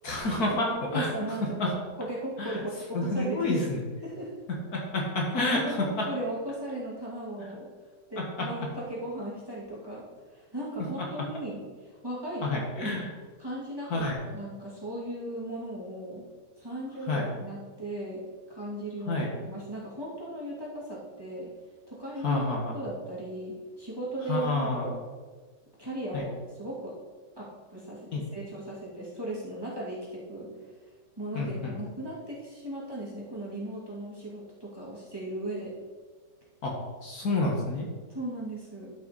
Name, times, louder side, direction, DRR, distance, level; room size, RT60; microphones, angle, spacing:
voice 1, 0.0-1.1 1.4-1.7 2.4-2.6 2.9-3.8 4.7-6.1 8.2-8.5 11.0-11.1 12.4-13.1 13.9-14.2 17.1-17.3 19.1-19.3 22.2-22.8 24.3-24.9 26.1-26.3 28.1-28.3 31.3-31.7 36.6-36.8 37.0-37.9, left 2 dB, 60° left, -1 dB, 1.8 m, -29 dB
voice 2, 0.9-1.7 2.0-3.7 4.0-4.4 5.6-7.7 8.1-10.0 10.3-13.0 13.4-16.2 16.6-18.2 18.5-21.5 21.9-22.4 22.7-24.9 25.8-26.3 26.6-26.9 27.4-30.5 31.2-35.7 38.1-38.9, right 1 dB, 15° right, -7 dB, 2.4 m, -37 dB
12.0 x 5.7 x 4.1 m, 1.4 s
omnidirectional pair, 1.9 m